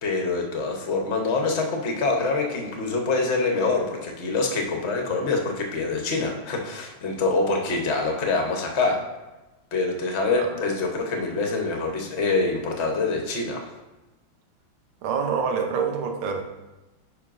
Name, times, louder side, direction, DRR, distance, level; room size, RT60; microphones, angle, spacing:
voice 1, 0.0-9.0 9.7-13.7, left 3 dB, 45° left, 2 dB, 0.9 m, -25 dB
voice 2, 15.0-16.4, right 6 dB, 80° right, 4 dB, 1.6 m, -26 dB
9.6 x 5.3 x 2.5 m, 1.1 s
omnidirectional pair, 2.3 m